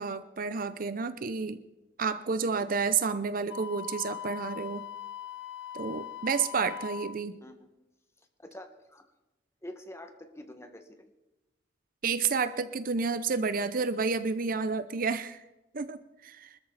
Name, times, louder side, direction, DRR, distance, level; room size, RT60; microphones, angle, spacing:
voice 1, 0.0-1.6 2.0-4.8 5.7-7.4 12.0-15.4 15.7-16.6, right 5 dB, 50° right, 13 dB, 0.7 m, -30 dB
Wind instrument woodwind instrument, 3.5-7.2, left 9 dB, 80° left, 0.8 m, -41 dB
voice 2, 8.4-9.1 9.6-11.1, left 1 dB, 15° left, 5 dB, 1.7 m, -46 dB
24.5 x 13.5 x 4.1 m, 1.0 s
head